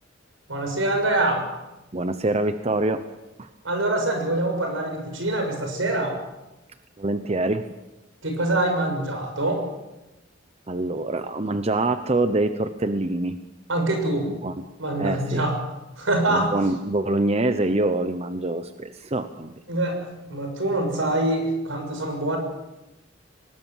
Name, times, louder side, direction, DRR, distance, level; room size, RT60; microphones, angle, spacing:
voice 1, 0.5-1.5 3.6-6.2 8.2-9.7 13.7-14.3 14.8-15.5 16.0-16.5 19.7-22.4, right 2 dB, 80° right, 4 dB, 6.6 m, -24 dB
voice 2, 1.9-3.0 3.4-3.5 7.0-7.7 10.7-13.4 14.4-14.5 15.0-15.4 16.3-19.6, right 2 dB, 30° right, 10 dB, 0.9 m, -25 dB
24.5 x 19.5 x 7.4 m, 0.98 s
head